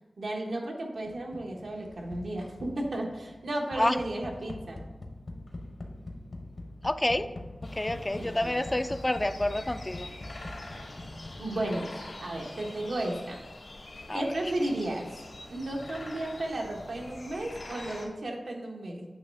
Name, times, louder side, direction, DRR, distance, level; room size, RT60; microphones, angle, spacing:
voice 1, 0.2-4.9 8.1-8.6 11.4-11.9 12.2-13.4 14.1-15.2 15.5-19.1, right 1 dB, 90° right, 0 dB, 1.2 m, -34 dB
sound 1, 1.1-11.9, left 2 dB, 55° left, 0.9 m, -44 dB
voice 2, 6.8-7.3 7.6-10.1 14.1-14.4, left 1 dB, 20° left, 10 dB, 0.3 m, -28 dB
sound 2, 7.6-18.0, left 2 dB, 80° left, 1.6 m, -45 dB
8.7 x 3.1 x 5.4 m, 1.1 s
wide cardioid pair, 65°, 0 cm